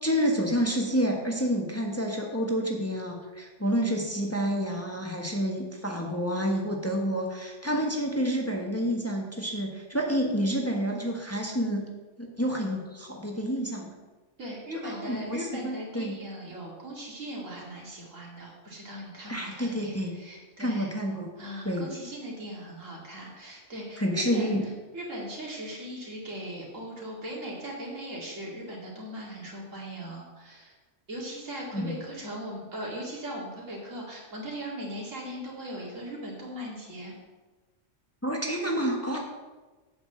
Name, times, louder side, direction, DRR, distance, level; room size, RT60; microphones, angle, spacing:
voice 1, 0.0-11.8 12.2-13.9 14.8-16.1 19.3-20.1 20.6-21.3 21.6-21.9 24.0-24.6 31.7-31.9 38.2-39.2, equal, 10° left, 0 dB, 1.2 m, -29 dB
voice 2, 14.4-20.9 21.4-24.5 24.9-30.7 31.1-37.1 39.1-39.2, equal, 90° right, -3 dB, 2.8 m, -39 dB
8.1 x 5.7 x 7.5 m, 1.2 s
omnidirectional pair, 1.3 m